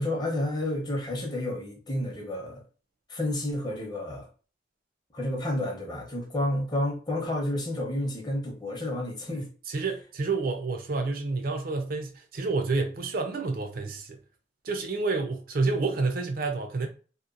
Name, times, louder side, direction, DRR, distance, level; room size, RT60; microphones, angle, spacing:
voice 1, 0.0-2.6 3.1-4.3 5.1-9.5, left 1 dB, 25° left, 0.7 m, -30 dB
voice 2, 9.7-14.2 14.6-16.9, right 3 dB, 55° right, 0.4 m, -29 dB
2.9 x 2.1 x 2.4 m
head